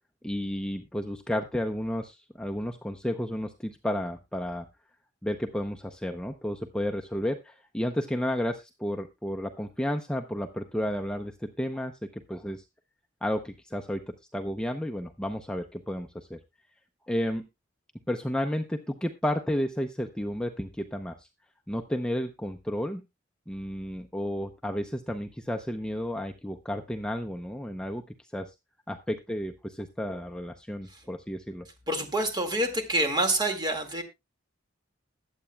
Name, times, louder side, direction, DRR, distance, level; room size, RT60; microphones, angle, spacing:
voice 1, 0.2-4.7 5.2-12.6 13.2-16.4 17.1-17.5 18.1-21.3 21.7-23.0 23.5-28.5 28.9-31.7, equal, 5° left, 4 dB, 0.6 m, -32 dB
voice 2, 31.9-34.0, right 1 dB, 20° right, 5 dB, 2.0 m, -27 dB
21.0 x 8.1 x 2.2 m, 0.23 s
head